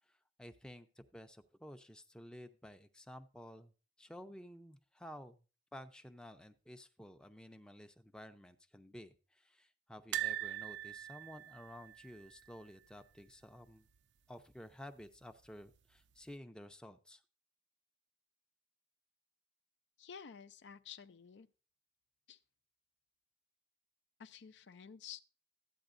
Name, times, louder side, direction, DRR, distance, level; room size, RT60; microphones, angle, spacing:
voice 1, 0.1-3.7 4.0-5.4 5.7-13.9 14.3-17.2, equal, 5° left, 0.5 m, -53 dB
sound 1, 10.1-13.2 13.4-13.6 13.9-14.0 15.2-15.8 16.3-16.4, right 13 dB, 80° right, 0.5 m, -42 dB
voice 2, 20.0-21.5 22.3-22.4 24.2-25.2, left 7 dB, 75° left, 0.5 m, -51 dB
13.0 x 8.8 x 2.5 m
head